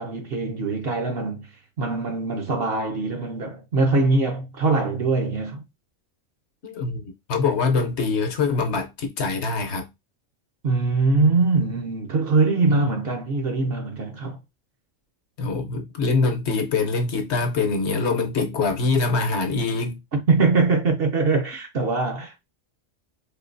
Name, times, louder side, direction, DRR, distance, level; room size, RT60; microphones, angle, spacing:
voice 1, 0.0-1.5 1.8-5.7 10.6-14.4 20.1-22.5, right 3 dB, 55° right, 0.9 m, -22 dB
voice 2, 6.6-9.9 12.7-12.8 15.4-20.0, left 4 dB, 60° left, 1.0 m, -24 dB
4.5 x 2.8 x 2.5 m
omnidirectional pair, 1.3 m